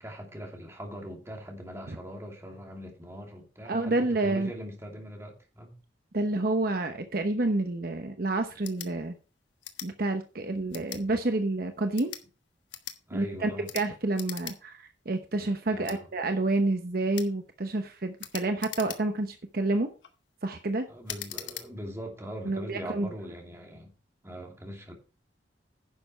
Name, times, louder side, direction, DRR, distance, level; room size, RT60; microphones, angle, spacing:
voice 1, 0.0-5.7 13.1-13.7 15.7-16.1 20.9-23.9 24.2-24.9, equal, 15° right, 2.6 m, -41 dB
voice 2, 3.7-4.5 6.1-9.1 9.8-12.1 13.1-19.9 20.4-20.9 22.5-23.1, right 2 dB, 55° right, 0.9 m, -29 dB
sound 1, 8.6-8.9 9.6-9.9 10.7-11.0 11.8-12.3 12.7-13.0 13.6-13.9 14.1-14.6 14.9-15.0 15.8-16.0 17.1-17.3 18.2-19.3 19.8-20.1 21.1-21.7, left 11 dB, 85° left, 1.4 m, -40 dB
10.5 x 6.9 x 4.4 m
head